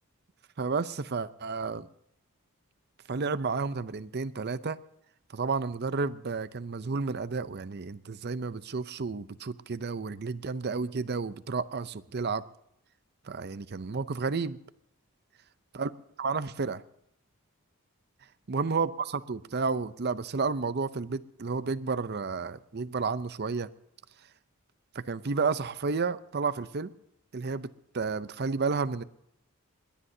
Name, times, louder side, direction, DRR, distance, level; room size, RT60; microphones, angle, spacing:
voice 1, 0.6-1.9 3.1-4.8 5.3-12.4 13.3-14.6 15.7-15.9 16.2-16.8 18.5-23.7 24.9-26.9 27.3-27.7 27.9-29.0, right 4 dB, 45° right, 15 dB, 0.6 m, -31 dB
21.5 x 18.5 x 2.8 m, 0.80 s
head